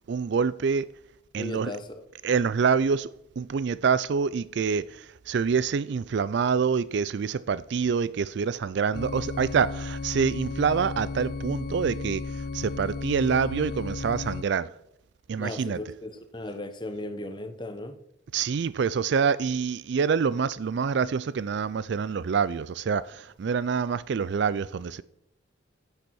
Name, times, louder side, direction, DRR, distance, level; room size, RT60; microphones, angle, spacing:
voice 1, 0.1-0.9 1.3-1.7 2.2-3.1 3.4-12.2 12.5-14.7 15.3-15.8 18.3-25.0, right 6 dB, 60° right, 0.4 m, -26 dB
voice 2, 1.4-2.0 15.4-18.0, left 1 dB, 25° left, 0.9 m, -36 dB
sound 1, 8.9-14.4, left 3 dB, 50° left, 0.4 m, -34 dB
9.9 x 6.8 x 6.3 m
head